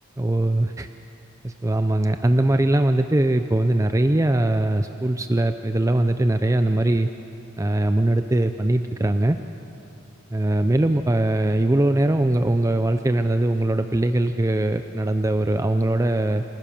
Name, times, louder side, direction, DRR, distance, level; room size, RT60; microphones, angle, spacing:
voice 1, 0.2-0.9 1.4-7.1 7.6-9.4 10.3-16.4, right 1 dB, 15° right, 8 dB, 0.4 m, -21 dB
27.0 x 14.0 x 7.0 m, 2.8 s
head